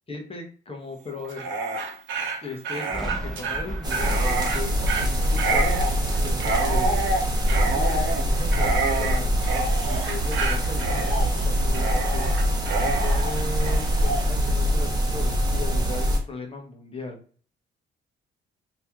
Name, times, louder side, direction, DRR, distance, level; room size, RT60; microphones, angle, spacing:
voice 1, 0.1-1.4 2.4-7.1 7.7-9.3 9.8-12.5 12.8-17.2, left 3 dB, 30° left, 2 dB, 1.3 m, -37 dB
Dog, 1.2-14.3, right 3 dB, 75° right, 1.1 m, -28 dB
Thunder, 2.9-8.3 8.7-10.2 10.4-12.1, right 1 dB, ahead, 1.3 m, -40 dB
sound 1, 3.8-16.2, equal, 20° right, 1.1 m, -24 dB
3.1 x 3.0 x 3.7 m, 0.43 s
cardioid pair, 90°, 20 cm